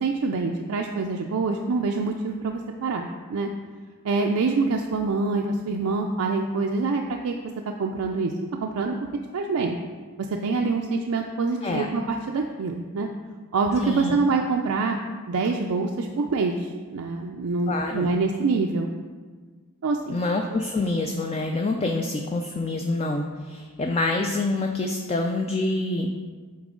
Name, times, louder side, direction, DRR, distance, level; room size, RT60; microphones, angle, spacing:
voice 1, 0.0-3.5 4.0-7.3 7.6-8.3 8.6-9.0 9.3-9.8 10.2-13.1 13.5-15.0 15.3-18.9 19.8-20.2, right 4 dB, 70° right, 2 dB, 0.4 m, -25 dB
voice 2, 13.8-14.2 17.7-18.1 20.1-26.2, left 2 dB, 25° left, 3 dB, 0.3 m, -26 dB
8.6 x 4.0 x 3.7 m, 1.5 s
head